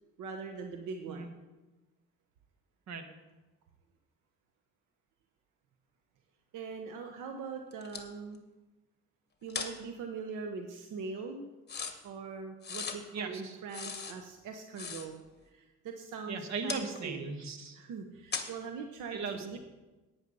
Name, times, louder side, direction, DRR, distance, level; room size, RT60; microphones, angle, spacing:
voice 1, 0.2-1.3 6.5-8.4 9.4-11.5 12.0-15.2 15.5-17.3 17.8-19.6, right 5 dB, 85° right, 4 dB, 1.0 m, -42 dB
sound 1, 7.7-8.1 9.5-9.7 11.7-12.0 12.6-13.0 13.7-14.2 14.5-14.6 14.8-15.3 16.7-17.0 18.3-18.5, left 5 dB, 35° left, 1.4 m, -38 dB
voice 2, 13.1-13.6 16.3-17.8 19.1-19.6, right 4 dB, 65° right, 6 dB, 1.5 m, -38 dB
9.8 x 9.1 x 5.4 m, 1.1 s
cardioid pair, 90°, 30 cm